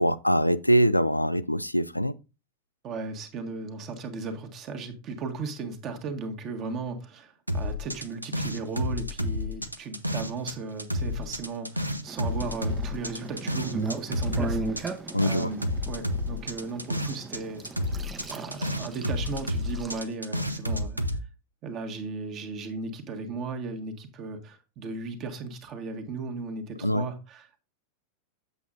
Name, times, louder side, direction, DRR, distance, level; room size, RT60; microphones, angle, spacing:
voice 1, 0.0-2.1 15.1-15.5 26.8-27.1, equal, 90° left, 0.4 m, -23 dB
voice 2, 2.8-17.6 18.3-21.0 21.6-27.6, right 4 dB, 35° right, 1.5 m, -36 dB
sound 1, 7.5-10.5 10.8-17.4 17.6-21.2, left 1 dB, 85° right, 0.7 m, -30 dB
sound 2, 12.1-20.0, right 4 dB, 15° right, 0.8 m, -37 dB
8.1 x 7.1 x 2.5 m
figure-of-eight pair, 90°, 0 cm